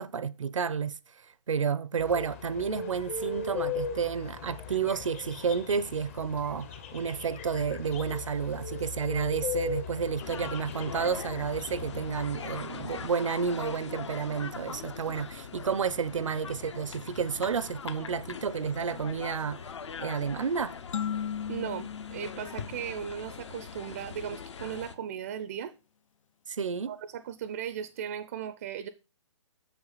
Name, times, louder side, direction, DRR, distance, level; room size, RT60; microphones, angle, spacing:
voice 1, 0.0-19.6 20.0-20.7 26.5-26.9, right 6 dB, 85° right, 0.6 m, -31 dB
sound 1, 2.0-13.1, left 5 dB, 30° left, 0.7 m, -38 dB
sound 2, 10.2-25.0, left 6 dB, 65° left, 0.9 m, -42 dB
sound 3, 20.9-23.6, left 8 dB, 80° left, 0.4 m, -37 dB
voice 2, 21.5-25.7 26.9-28.9, right 9 dB, 30° right, 0.4 m, -37 dB
7.1 x 5.9 x 4.0 m
hypercardioid pair, 160°, 16 cm